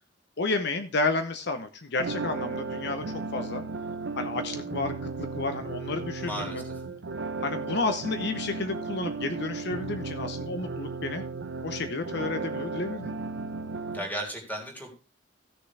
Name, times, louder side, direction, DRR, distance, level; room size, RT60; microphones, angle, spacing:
voice 1, 0.4-3.6 4.2-4.9 5.3-6.5 7.4-11.2 11.6-13.1, left 3 dB, 60° left, 8 dB, 0.8 m, -31 dB
sound 1, 2.0-14.0, right 4 dB, 70° right, 0.9 m, -35 dB
voice 2, 6.2-6.7 13.9-14.9, equal, 10° left, 1 dB, 3.4 m, -35 dB
15.5 x 6.8 x 3.3 m, 0.32 s
head